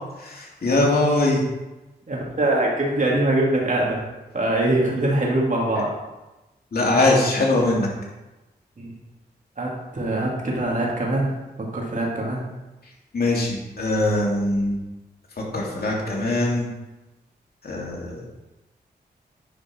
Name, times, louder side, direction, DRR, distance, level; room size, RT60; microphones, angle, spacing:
voice 1, 0.2-1.4 6.7-7.9 13.1-14.8 15.5-16.7 17.6-18.3, left 2 dB, 60° left, -3 dB, 2.7 m, -21 dB
voice 2, 2.1-4.0 4.3-5.9 8.8-8.9 9.6-11.3 11.6-12.4, right 1 dB, 45° right, -3 dB, 2.8 m, -23 dB
10.0 x 5.2 x 4.6 m, 1.1 s
cardioid pair, 50°, 18 cm